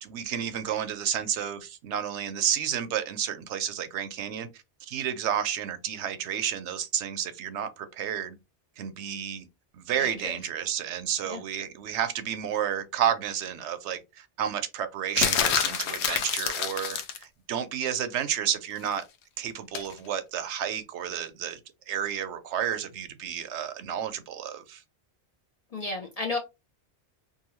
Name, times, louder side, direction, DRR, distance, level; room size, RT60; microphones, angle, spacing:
voice 1, 0.0-4.5 4.9-8.3 8.8-9.5 9.7-17.0 17.5-19.0 19.4-21.6 21.9-24.8, right 9 dB, 80° right, 0.9 m, -31 dB
voice 2, 10.0-10.4 11.3-11.4 25.7-26.4, left 3 dB, 50° left, 0.5 m, -33 dB
sound 1, 15.2-17.2 19.7-19.9, left 7 dB, 70° left, 0.8 m, -27 dB
2.7 x 2.5 x 3.0 m
omnidirectional pair, 1.2 m